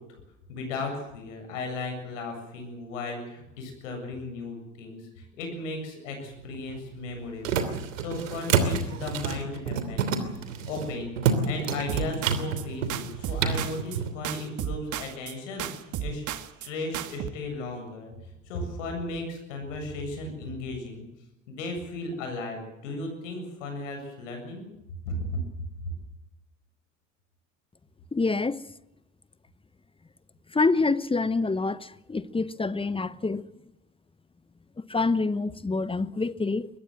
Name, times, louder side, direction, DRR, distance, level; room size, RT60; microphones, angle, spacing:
voice 1, 0.5-7.7 8.0-10.1 10.7-11.1 11.4-16.3 16.6-18.1 18.5-21.0 21.5-24.6 25.1-25.4 25.8-25.9, left 2 dB, 75° left, 7.6 m, -35 dB
sound 1, 6.3-14.1, right 6 dB, 80° right, 3.1 m, -29 dB
sound 2, 11.9-12.6 12.9-14.0 14.2-15.3 15.6-16.7 16.9-17.3, right 11 dB, 50° right, 2.1 m, -34 dB
voice 2, 28.1-28.6 30.5-33.5 34.8-36.7, left 3 dB, 15° left, 1.0 m, -26 dB
22.5 x 20.5 x 7.7 m
hypercardioid pair, 65°, 38 cm